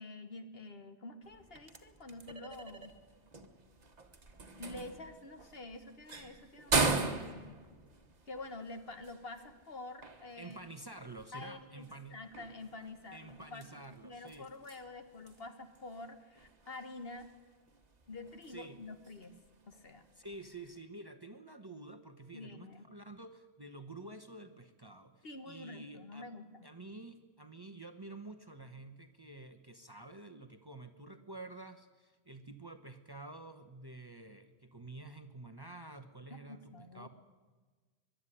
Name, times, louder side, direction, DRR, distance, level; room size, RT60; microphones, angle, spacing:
voice 1, 0.0-2.9 4.6-7.5 8.3-10.6 11.3-17.3 18.1-19.4 19.7-20.0 22.3-22.8 25.2-26.7 36.3-37.1, left 2 dB, 60° left, 8 dB, 1.7 m, -48 dB
sound 1, 1.2-20.8, right 3 dB, 40° right, 1.5 m, -41 dB
voice 2, 10.4-12.2 13.1-14.5 18.5-18.8 20.2-26.3 26.6-37.1, right 2 dB, 25° right, 8 dB, 1.0 m, -49 dB
23.0 x 11.5 x 10.0 m, 1.4 s
omnidirectional pair, 1.1 m